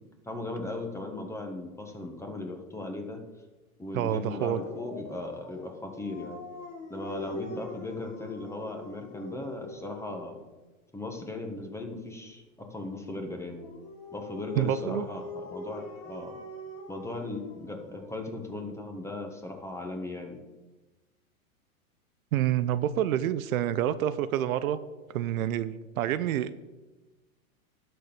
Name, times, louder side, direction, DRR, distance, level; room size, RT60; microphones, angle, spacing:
voice 1, 0.2-3.2 3.8-6.4 6.9-10.4 10.9-13.7 14.1-16.4 16.9-20.4, left 2 dB, 5° left, 3 dB, 1.4 m, -37 dB
voice 2, 3.9-4.6 14.6-15.1 22.3-24.8 25.1-26.6, right 11 dB, 75° right, 14 dB, 0.7 m, -28 dB
Dog, 4.6-10.4 13.6-18.1, left 2 dB, 40° left, 2.4 m, -43 dB
11.5 x 4.6 x 6.9 m, 1.2 s
hypercardioid pair, 115°, 42 cm